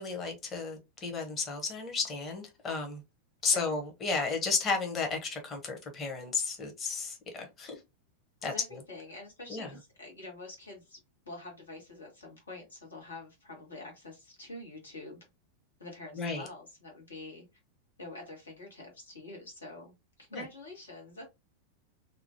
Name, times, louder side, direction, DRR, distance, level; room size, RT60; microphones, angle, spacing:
voice 1, 0.0-3.0 3.4-7.8 8.4-8.5 9.5-9.7 16.1-16.5 20.3-20.4, left 4 dB, 25° left, 1.0 m, -33 dB
voice 2, 8.4-11.0 11.2-15.3 15.8-17.4 18.0-21.3, left 2 dB, 70° left, 1.4 m, -46 dB
2.9 x 2.4 x 2.7 m
figure-of-eight pair, 90°, 0 cm